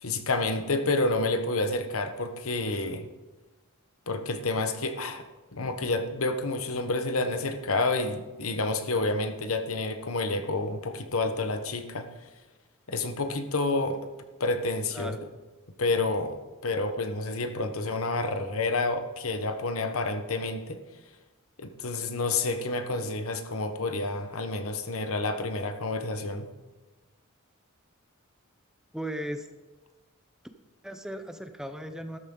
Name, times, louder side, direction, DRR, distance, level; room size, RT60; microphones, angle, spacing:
voice 1, 0.0-3.1 4.1-5.2 5.5-12.1 12.9-14.0 14.4-15.1 15.8-20.8 21.6-26.5, left 2 dB, 70° left, 7 dB, 1.1 m, -29 dB
voice 2, 14.9-15.2 28.9-29.5 30.8-32.2, equal, 5° right, 7 dB, 0.6 m, -36 dB
13.0 x 13.0 x 3.9 m, 1.2 s
head